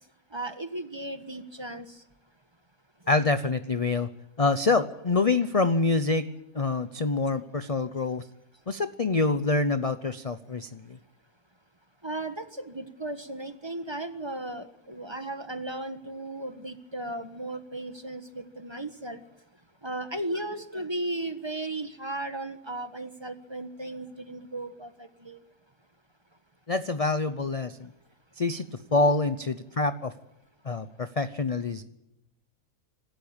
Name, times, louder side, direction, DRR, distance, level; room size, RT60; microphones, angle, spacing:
voice 1, 0.3-2.0 12.0-19.2 19.8-25.4, right 1 dB, 20° right, 9 dB, 1.3 m, -36 dB
voice 2, 3.1-4.1 4.4-6.3 6.5-8.2 8.7-10.8 26.7-27.9 28.4-28.7 28.9-30.1 30.6-31.8, left 3 dB, 35° left, 11 dB, 0.6 m, -26 dB
26.0 x 13.0 x 8.8 m, 0.92 s
omnidirectional pair, 1.6 m